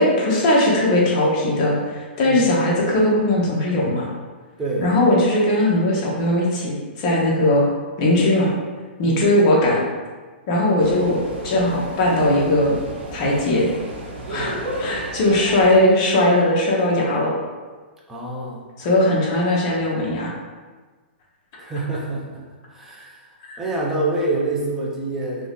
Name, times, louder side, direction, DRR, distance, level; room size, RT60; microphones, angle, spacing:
voice 1, 0.0-4.1 4.8-7.7 8.0-8.5 9.0-9.9 10.5-11.2 11.4-12.8 13.1-13.7 14.3-17.3 18.8-20.3 23.4-23.6, left 1 dB, 35° left, -4 dB, 0.7 m, -19 dB
voice 2, 4.6-4.9 9.0-9.3 14.4-14.6 18.1-18.7 21.6-22.4 22.7-23.3 23.6-25.5, right 2 dB, 5° right, -4 dB, 0.4 m, -26 dB
sound 1, 10.8-15.8, right 1 dB, 75° right, 0.8 m, -33 dB
2.7 x 2.3 x 3.3 m, 1.4 s
hypercardioid pair, 160°, 6 cm